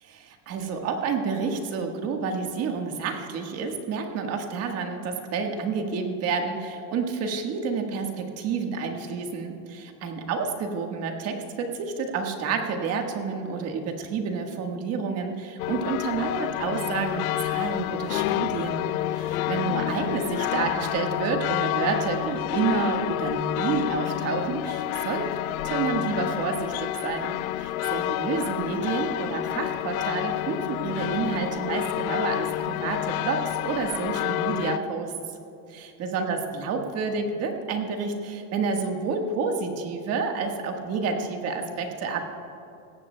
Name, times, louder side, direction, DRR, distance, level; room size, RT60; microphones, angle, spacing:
voice 1, 0.0-18.9 19.2-25.3 25.6-35.1 35.7-42.3, right 5 dB, 35° right, 4 dB, 1.4 m, -29 dB
sound 1, 15.6-34.8, left 15 dB, 85° left, 0.5 m, -29 dB
18.0 x 15.0 x 2.2 m, 2.9 s
supercardioid pair, 140°, 42 cm